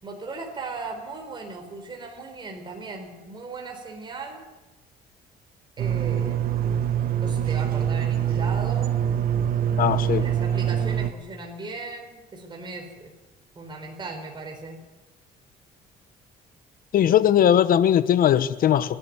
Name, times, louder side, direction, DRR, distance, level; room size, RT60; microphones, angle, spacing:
voice 1, 0.0-4.5 5.8-6.5 7.2-8.9 10.0-13.1 13.6-14.8, right 3 dB, 25° right, 2 dB, 4.5 m, -37 dB
sound 1, 5.8-11.1, right 9 dB, 60° right, 1.4 m, -24 dB
voice 2, 9.8-10.2 16.9-19.0, left 10 dB, 60° left, 15 dB, 1.0 m, -19 dB
28.0 x 11.5 x 9.4 m, 1.1 s
cardioid pair, 110°, 17 cm